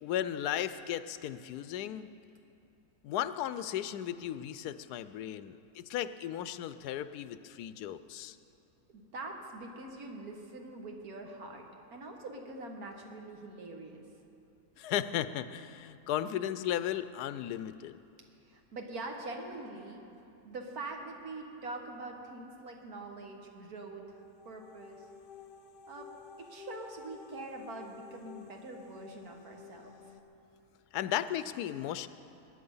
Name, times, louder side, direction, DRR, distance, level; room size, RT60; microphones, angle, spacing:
voice 1, 0.0-2.1 3.0-8.4 14.8-18.0 30.9-32.1, left 11 dB, 85° left, 13 dB, 1.1 m, -35 dB
voice 2, 8.9-11.7 11.9-14.0 18.4-20.0 20.4-25.1 25.9-26.1 26.4-30.1, right 2 dB, 70° right, 2 dB, 1.9 m, -44 dB
sound 1, 24.1-30.2, left 6 dB, 70° left, 0.5 m, -52 dB
21.0 x 9.4 x 5.5 m, 2.7 s
omnidirectional pair, 1.7 m